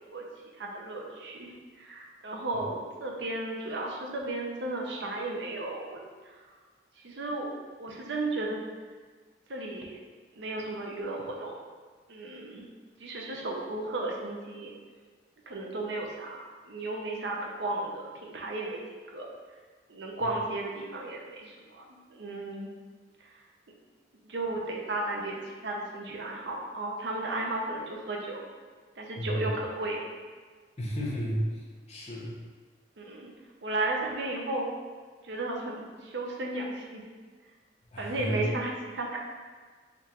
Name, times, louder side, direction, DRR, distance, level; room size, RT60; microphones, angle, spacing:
voice 1, 0.6-6.0 6.2-6.4 7.0-8.6 9.5-10.0 10.3-11.5 12.1-12.7 13.0-14.7 15.5-18.8 19.1-19.3 19.9-22.7 23.2-23.3 24.2-28.4 29.0-30.0 33.0-33.3 33.6-34.7 35.2-37.1 38.0-39.2, right 2 dB, 70° right, -1 dB, 0.6 m, -34 dB
voice 2, 29.2-29.6 30.8-32.4 37.9-38.4, equal, 35° left, -4 dB, 0.8 m, -33 dB
3.7 x 2.5 x 4.3 m, 1.5 s
head